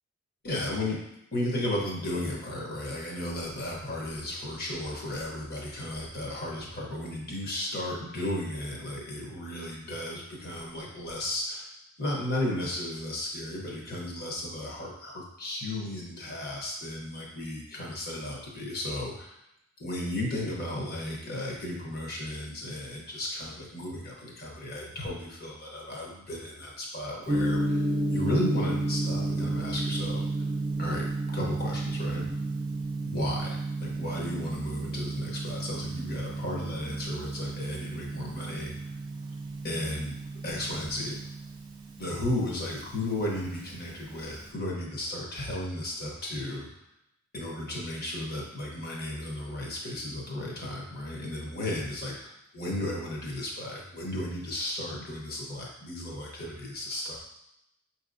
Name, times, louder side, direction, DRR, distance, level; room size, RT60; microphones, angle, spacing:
voice 1, 0.4-11.7 12.0-19.3 19.8-27.8 28.1-30.3 30.8-31.1 31.3-32.3 33.1-38.8 39.6-40.1 40.4-41.2 42.0-46.7 47.3-57.2, left 1 dB, 45° left, -2 dB, 0.9 m, -34 dB
Gong, 27.3-44.5, right 2 dB, 20° right, 0.4 m, -33 dB
5.1 x 2.9 x 2.5 m, 0.83 s
head